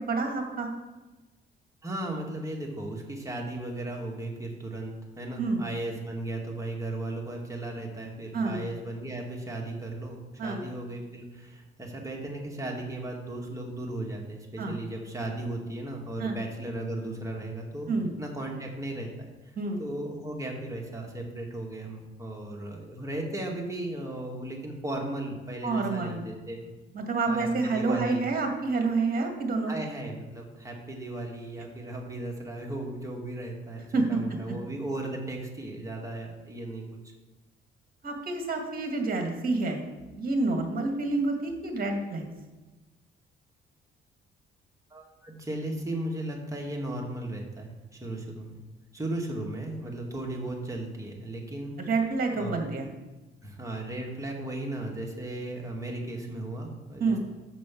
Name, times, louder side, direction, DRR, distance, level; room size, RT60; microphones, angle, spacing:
voice 1, 0.1-0.7 5.4-5.6 8.3-8.6 10.4-10.6 14.6-14.8 16.2-16.4 17.9-18.1 19.6-19.8 25.6-26.3 26.9-29.7 33.9-34.4 38.0-39.8 40.1-42.2 51.8-52.9 57.0-57.2, right 3 dB, 50° right, 3 dB, 2.0 m, -28 dB
voice 2, 1.8-17.9 18.2-19.1 19.4-26.6 27.3-28.2 29.7-33.8 34.1-36.8 44.9-48.6 48.9-51.7 52.3-52.6 53.4-57.2, right 1 dB, 15° right, 0 dB, 2.1 m, -36 dB
6.9 x 6.2 x 6.1 m, 1.2 s
cardioid pair, 90°, 20 cm